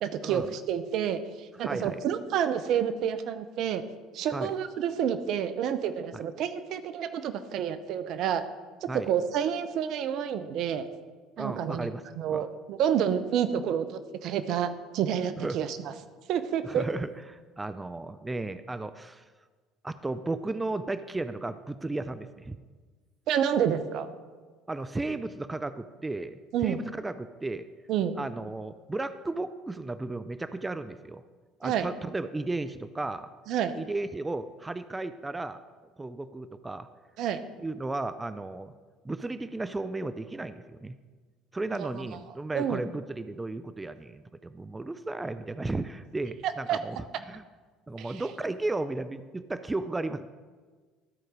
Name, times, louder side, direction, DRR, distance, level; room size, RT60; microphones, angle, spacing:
voice 1, 0.0-3.8 4.1-8.4 9.1-10.8 11.4-15.9 16.3-16.8 23.3-24.1 26.5-26.8 27.9-28.1 31.6-31.9 33.5-33.7 37.2-37.4 41.8-42.1 42.5-42.8 46.7-46.8 48.0-48.2, right 9 dB, 60° right, 12 dB, 0.6 m, -29 dB
voice 2, 1.6-2.0 4.3-4.5 6.1-6.2 8.9-9.1 11.4-12.5 15.4-15.6 16.6-19.3 19.8-22.6 24.7-27.7 28.2-31.2 31.6-33.3 33.8-35.6 36.0-36.9 37.6-38.7 39.0-41.0 41.5-47.4 47.9-50.3, right 2 dB, 15° right, 12 dB, 0.4 m, -34 dB
13.0 x 4.6 x 5.2 m, 1.4 s
hypercardioid pair, 70°, 0 cm